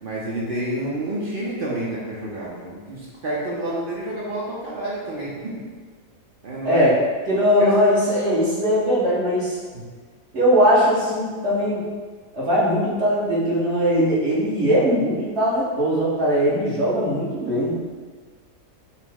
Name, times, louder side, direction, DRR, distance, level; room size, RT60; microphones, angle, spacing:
voice 1, 0.0-5.6 6.4-6.8 7.6-7.7 9.7-9.8, right 1 dB, 65° right, -5 dB, 0.5 m, -29 dB
voice 2, 6.6-7.0 7.3-9.6 10.3-11.8 12.3-17.8, equal, 50° right, -8 dB, 1.3 m, -20 dB
5.4 x 2.0 x 3.4 m, 1.5 s
omnidirectional pair, 1.7 m